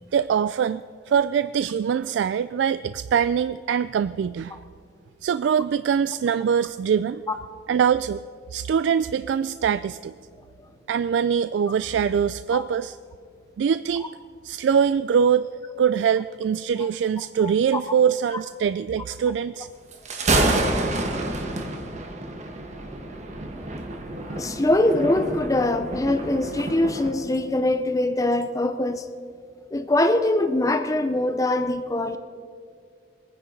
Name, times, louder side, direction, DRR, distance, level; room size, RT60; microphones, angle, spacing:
voice 1, 0.1-4.6 5.2-7.2 7.7-8.2 8.5-10.1 10.9-13.0 13.6-14.1 14.4-15.5 15.8-19.7, right 7 dB, 90° right, 14 dB, 0.3 m, -23 dB
Thunder, 19.9-27.1, right 2 dB, 40° right, 1.4 m, -28 dB
voice 2, 24.3-29.1 29.7-32.2, left 1 dB, 20° left, 9 dB, 0.5 m, -23 dB
21.5 x 9.6 x 5.2 m, 2.2 s
head